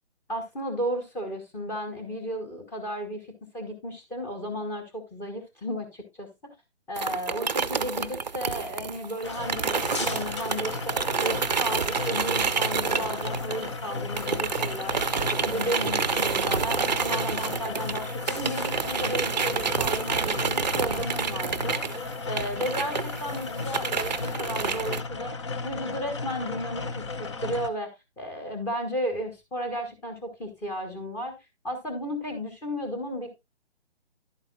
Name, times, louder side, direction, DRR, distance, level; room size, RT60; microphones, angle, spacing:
voice 1, 0.3-3.3 3.5-6.3 6.9-15.0 15.3-21.8 22.2-25.3 25.6-27.9 28.2-31.4 31.6-33.3, equal, 5° left, 5 dB, 1.1 m, -33 dB
sound 1, 7.0-13.9 14.2-25.0, right 5 dB, 40° right, 0.7 m, -29 dB
sound 2, 9.2-27.7, left 3 dB, 25° left, 0.8 m, -34 dB
11.5 x 8.7 x 2.3 m, 0.21 s
figure-of-eight pair, 140°, 34 cm